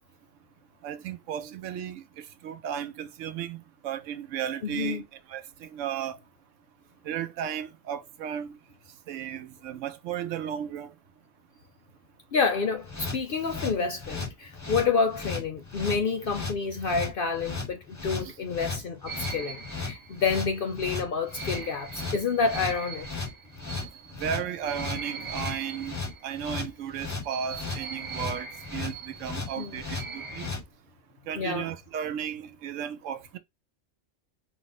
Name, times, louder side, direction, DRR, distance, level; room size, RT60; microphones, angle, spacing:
voice 1, 0.8-5.0 5.3-6.2 7.0-8.6 9.1-10.9 18.2-18.3 24.2-26.0 26.2-30.5 31.3-33.4, right 9 dB, 85° right, 1.0 m, -34 dB
voice 2, 4.6-5.0 12.3-23.1 29.6-29.8 31.4-31.7, left 5 dB, 55° left, 0.7 m, -28 dB
sound 1, 12.8-30.6, left 4 dB, 20° left, 0.6 m, -36 dB
sound 2, 19.1-26.6 27.2-30.5, right 5 dB, 35° right, 0.5 m, -41 dB
4.9 x 2.1 x 3.9 m
omnidirectional pair, 1.3 m